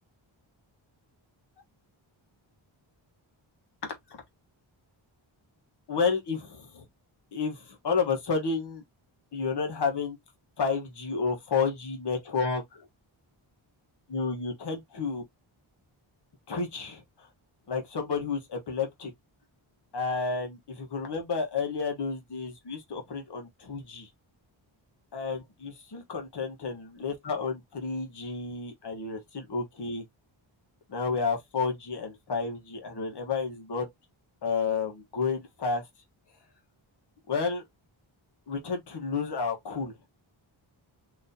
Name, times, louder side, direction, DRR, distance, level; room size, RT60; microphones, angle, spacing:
voice 1, 3.8-4.2 5.9-6.8 7.3-8.8 9.3-10.2 10.6-12.9 14.1-15.2 16.5-17.3 17.7-19.1 19.9-24.1 25.1-30.0 30.9-33.9 34.4-35.8 37.3-37.6 38.5-40.0, left 5 dB, 55° left, 1.3 m, -31 dB
4.1 x 2.9 x 2.7 m
wide cardioid pair, 170°, 48 cm